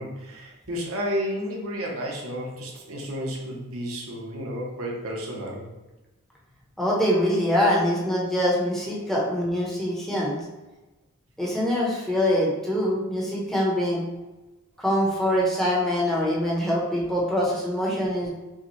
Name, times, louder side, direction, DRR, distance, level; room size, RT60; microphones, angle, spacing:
voice 1, 0.0-5.7, equal, 65° right, -1 dB, 0.9 m, -32 dB
voice 2, 6.8-10.4 11.4-14.0 14.8-18.3, equal, ahead, -5 dB, 0.9 m, -24 dB
5.6 x 2.3 x 3.0 m, 1.1 s
head